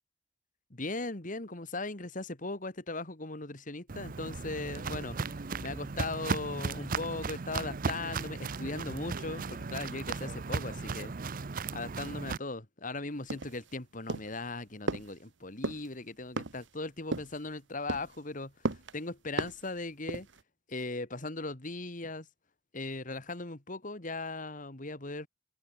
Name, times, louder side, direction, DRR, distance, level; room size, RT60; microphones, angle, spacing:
voice 1, 0.7-5.3 5.6-11.1 11.7-20.3 20.7-22.3 22.7-25.3, left 2 dB, 45° left, 2.4 m, -38 dB
Walk footsteps, 3.9-12.4, right 4 dB, 45° right, 0.6 m, -36 dB
sound 1, 13.3-13.7 14.1-14.4 14.9-15.1 15.6-15.9 16.4-16.7 17.1-17.4 17.9-18.2 18.6-18.9 19.4-19.7 20.1-20.4, right 2 dB, 70° right, 1.3 m, -35 dB
open air
head